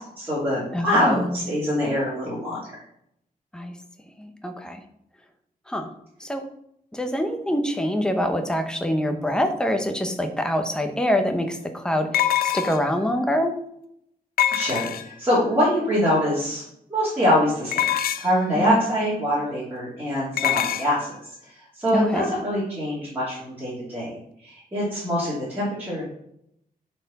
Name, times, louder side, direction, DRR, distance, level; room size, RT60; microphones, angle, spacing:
voice 1, 0.2-2.6 14.5-16.6 16.9-17.8 18.2-21.1 21.8-24.1 24.4-26.1, equal, 10° right, -10 dB, 3.0 m, -24 dB
voice 2, 0.7-1.4 3.5-3.7 4.2-4.8 5.7-5.9 6.2-6.4 6.9-13.6 18.5-18.8 21.9-22.3, equal, 5° left, 5 dB, 0.9 m, -25 dB
sound 1, 10.6-10.7 12.1-13.0 14.4-15.3 17.7-18.4 20.4-20.9, left 11 dB, 75° left, 0.5 m, -24 dB
10.5 x 4.5 x 4.1 m, 0.74 s
wide cardioid pair, 150°, 15 cm